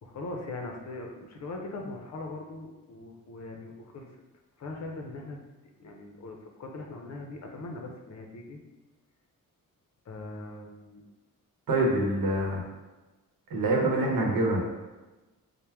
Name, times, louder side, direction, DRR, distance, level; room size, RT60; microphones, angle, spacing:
voice 1, 0.0-4.1 4.6-5.4 5.6-8.6 10.1-11.0, left 2 dB, 55° left, 2 dB, 0.6 m, -40 dB
voice 2, 11.7-12.6 13.5-14.6, right 2 dB, 85° right, 0 dB, 0.9 m, -25 dB
4.4 x 2.1 x 3.4 m, 1.1 s
wide cardioid pair, 160°, 34 cm